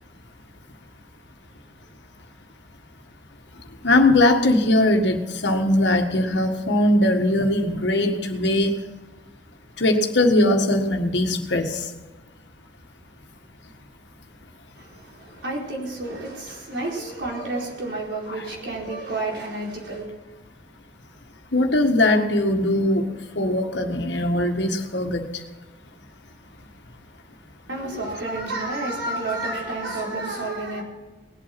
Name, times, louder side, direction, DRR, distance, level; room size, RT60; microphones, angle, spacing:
voice 1, 3.8-8.8 9.8-11.8 21.5-25.3, left 1 dB, 65° left, 4 dB, 1.8 m, -20 dB
voice 2, 14.8-20.1 27.7-30.8, right 2 dB, 65° right, -3 dB, 4.6 m, -30 dB
20.0 x 8.6 x 5.9 m, 1.2 s
head